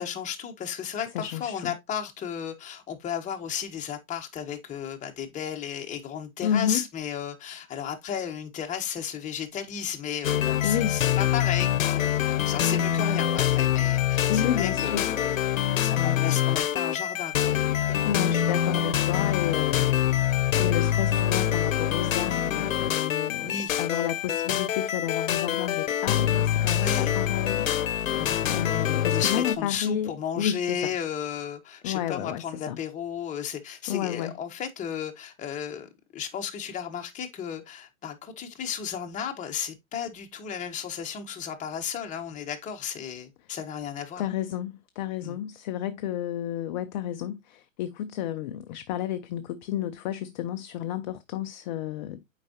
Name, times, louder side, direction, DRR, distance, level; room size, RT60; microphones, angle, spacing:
voice 1, 0.0-15.3 15.8-18.1 19.8-20.0 23.4-23.8 26.7-27.1 28.2-28.5 29.1-44.3 45.2-45.4, left 8 dB, 20° left, 1.2 m, -34 dB
voice 2, 1.1-1.7 6.4-6.8 10.6-11.0 14.3-15.1 18.0-20.3 20.6-27.7 28.5-30.9 31.8-32.8 33.9-34.3 43.5-43.6 44.2-52.2, left 10 dB, 35° left, 0.5 m, -31 dB
sound 1, 10.2-29.6, left 10 dB, 75° left, 0.8 m, -25 dB
7.4 x 4.8 x 2.8 m
hypercardioid pair, 120°, 40 cm